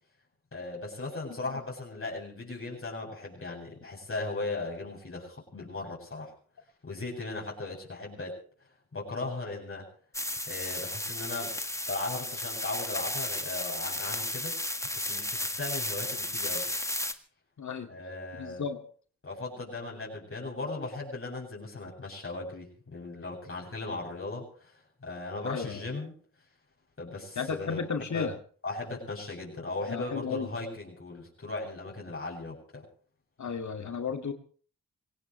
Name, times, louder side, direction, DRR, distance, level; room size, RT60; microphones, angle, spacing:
voice 1, 0.5-6.3 6.8-8.4 8.9-9.9 10.5-11.6 11.9-14.6 14.9-16.7 17.9-18.7 19.2-24.7 25.0-26.1 27.0-28.3 28.6-32.8, left 3 dB, 40° left, -3 dB, 7.9 m, -37 dB
sound 1, 10.1-17.1, left 1 dB, 10° left, 1.6 m, -34 dB
voice 2, 17.6-17.9 18.3-18.8 25.4-25.8 27.4-28.3 29.9-30.5 33.4-34.3, left 5 dB, 55° left, 6 dB, 2.3 m, -33 dB
26.0 x 17.0 x 3.2 m, 0.44 s
supercardioid pair, 50°, 35 cm